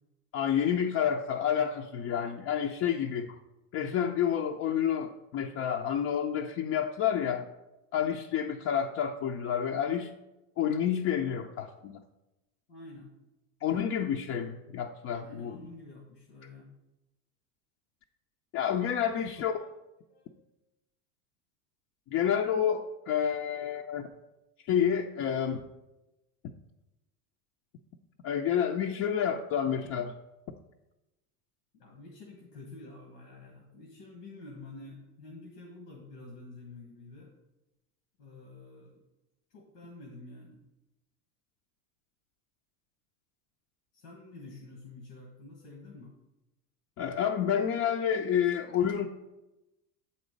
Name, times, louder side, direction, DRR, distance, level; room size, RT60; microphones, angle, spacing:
voice 1, 0.3-3.4 3.7-7.5 7.9-10.1 10.6-12.0 13.6-15.6 18.5-19.6 22.1-24.1 24.7-25.6 28.2-30.1 47.0-49.1, left 8 dB, 35° left, 2 dB, 0.4 m, -29 dB
voice 2, 12.7-13.1 15.2-16.7 19.1-19.7 20.1-20.5 31.8-37.3 38.2-39.0 39.5-40.6 43.9-46.1, left 2 dB, 90° left, 0 dB, 1.4 m, -49 dB
7.6 x 4.1 x 5.1 m, 0.98 s
hypercardioid pair, 95°, 47 cm